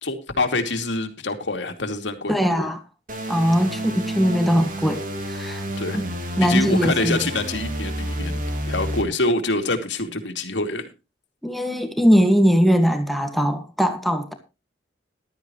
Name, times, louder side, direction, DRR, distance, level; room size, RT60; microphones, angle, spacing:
voice 1, 0.0-2.7 5.8-6.0 6.4-8.4 8.7-10.9, left 2 dB, 85° left, 6 dB, 2.6 m, -26 dB
voice 2, 2.3-2.8 3.3-5.0 5.3-5.6 5.9-6.0 6.4-7.2 11.4-14.3, equal, ahead, 6 dB, 1.7 m, -20 dB
sound 1, 3.1-9.0, equal, 45° right, 3.0 m, -30 dB
14.5 x 12.5 x 3.1 m, 0.28 s
head